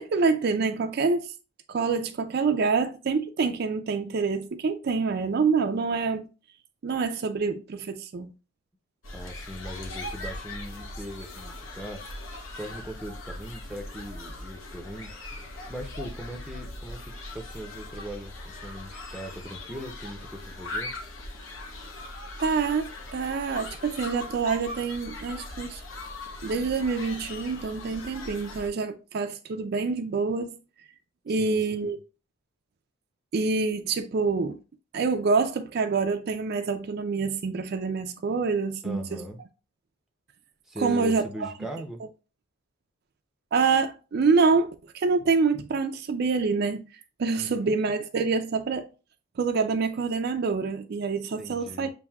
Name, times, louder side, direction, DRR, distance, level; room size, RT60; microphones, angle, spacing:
voice 1, 0.0-1.3 1.7-6.2 6.8-8.3 22.4-25.8 26.4-30.6 31.3-32.0 33.3-34.6 34.9-39.2 40.8-41.5 43.5-46.8 47.2-48.9 49.4-51.9, right 4 dB, 50° right, 0.4 m, -26 dB
sound 1, 9.0-28.7, left 2 dB, 65° left, 0.8 m, -40 dB
voice 2, 9.1-12.0 12.6-15.1 15.7-17.0 17.3-20.9 31.3-31.9 38.8-39.4 40.7-42.0 47.4-47.7 51.4-51.9, equal, ahead, 0.6 m, -39 dB
7.0 x 2.6 x 2.3 m
head